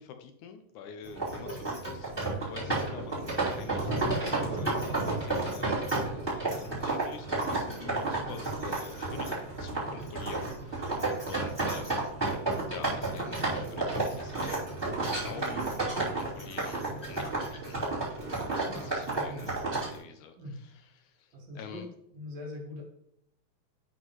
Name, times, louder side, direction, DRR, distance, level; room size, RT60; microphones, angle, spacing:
voice 1, 0.0-2.1 2.4-11.0 11.2-12.1 12.7-15.7 16.1-16.8 17.1-17.8 18.7-19.5 19.9-21.9, left 7 dB, 75° left, 6 dB, 2.0 m, -47 dB
sound 1, 1.0-20.0, right 2 dB, 10° right, 2.9 m, -32 dB
voice 2, 18.6-19.9 20.4-20.7 21.3-21.8 22.1-22.8, left 1 dB, 60° right, -1 dB, 2.8 m, -43 dB
11.0 x 4.5 x 3.1 m, 0.75 s
omnidirectional pair, 3.7 m